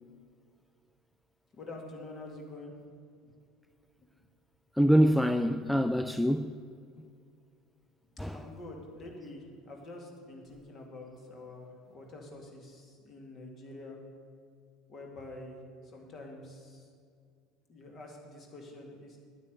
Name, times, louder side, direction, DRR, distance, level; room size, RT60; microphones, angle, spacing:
voice 1, 1.5-2.7 3.2-3.3 4.0-4.1 8.3-14.0 14.9-16.9 17.7-19.2, left 2 dB, 40° left, 2.4 m, -47 dB
voice 2, 4.8-6.5 8.2-8.4, equal, ahead, 0.4 m, -25 dB
9.6 x 8.4 x 8.0 m
figure-of-eight pair, 65°, 0 cm